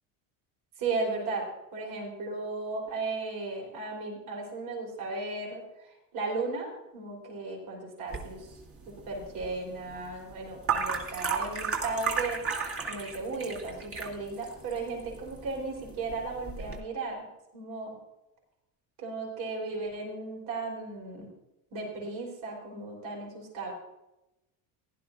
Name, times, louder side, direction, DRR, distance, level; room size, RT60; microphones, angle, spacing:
voice 1, 0.8-1.4 1.7-5.6 6.1-8.4 9.1-17.3 17.5-17.9 19.0-21.3 21.7-23.7, right 3 dB, 60° right, -1 dB, 4.0 m, -35 dB
sound 1, 8.1-16.8, right 5 dB, 30° right, 2.0 m, -35 dB
15.5 x 11.0 x 2.6 m, 0.97 s
supercardioid pair, 90°, 44 cm